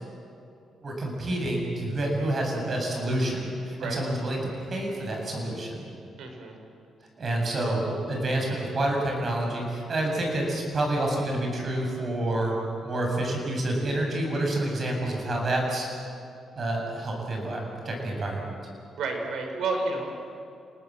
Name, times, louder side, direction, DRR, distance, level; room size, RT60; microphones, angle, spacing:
voice 1, 0.8-4.4 4.7-5.9 7.2-15.9 16.6-18.5, right 1 dB, 40° right, 0 dB, 7.6 m, -28 dB
voice 2, 6.2-6.6 19.0-20.1, right 3 dB, 75° right, 3 dB, 4.9 m, -30 dB
29.5 x 19.0 x 7.7 m, 2.6 s
cardioid pair, 105°, 0 cm